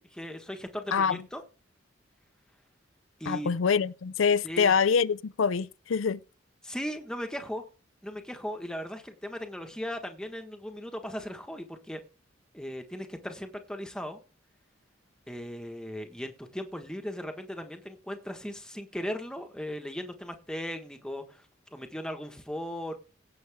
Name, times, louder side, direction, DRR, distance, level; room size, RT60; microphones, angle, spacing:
voice 1, 0.1-1.4 3.2-3.5 4.4-4.7 6.6-7.6 8.0-12.0 12.5-14.2 15.3-21.5 21.7-23.0, equal, 5° left, 1.4 m, -37 dB
voice 2, 3.3-6.2, left 6 dB, 85° left, 0.5 m, -25 dB
17.0 x 7.0 x 3.6 m
head